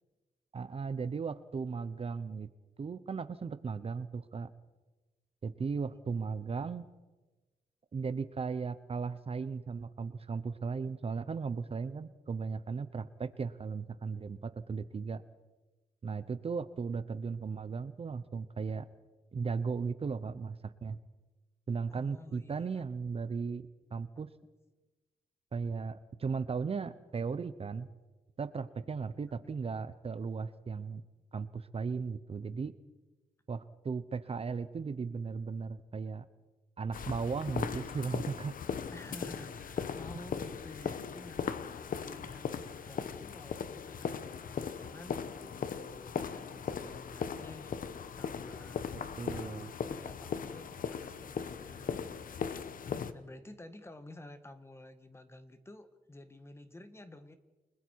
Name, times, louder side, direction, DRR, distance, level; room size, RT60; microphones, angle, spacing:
voice 1, 0.5-2.5 2.8-4.5 5.4-6.8 7.9-15.2 16.0-18.9 19.3-21.0 21.7-23.6 23.9-24.3 25.5-27.9 28.4-31.0 31.3-32.7 33.5-36.2 36.8-38.6 49.2-49.7, right 5 dB, 40° right, 13 dB, 0.8 m, -36 dB
voice 2, 21.9-22.8 38.9-52.2 53.1-57.3, left 1 dB, 15° left, 10 dB, 1.5 m, -52 dB
sound 1, 36.9-53.1, left 6 dB, 60° left, 1.0 m, -38 dB
29.5 x 20.5 x 4.7 m, 1.2 s
wide cardioid pair, 130°, 16 cm